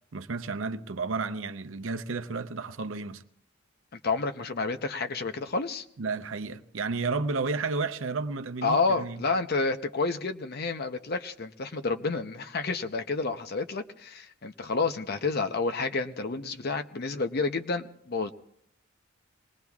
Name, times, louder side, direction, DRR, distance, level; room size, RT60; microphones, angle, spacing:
voice 1, 0.1-3.2 6.0-9.2, right 4 dB, 75° right, 0.7 m, -32 dB
voice 2, 4.0-5.8 8.6-18.3, left 3 dB, 50° left, 0.7 m, -29 dB
26.0 x 20.5 x 2.4 m
head